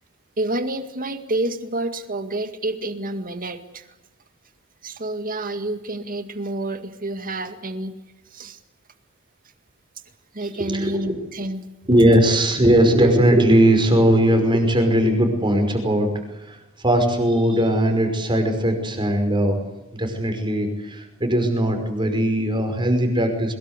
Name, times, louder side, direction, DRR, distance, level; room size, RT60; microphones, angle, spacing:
voice 1, 0.4-3.8 4.8-7.9 8.3-8.6 10.3-11.7, right 2 dB, 40° right, 8 dB, 2.1 m, -28 dB
voice 2, 10.4-11.2 11.9-19.6 19.9-23.6, right 1 dB, 25° right, 5 dB, 5.5 m, -19 dB
23.0 x 21.5 x 8.3 m, 0.97 s
head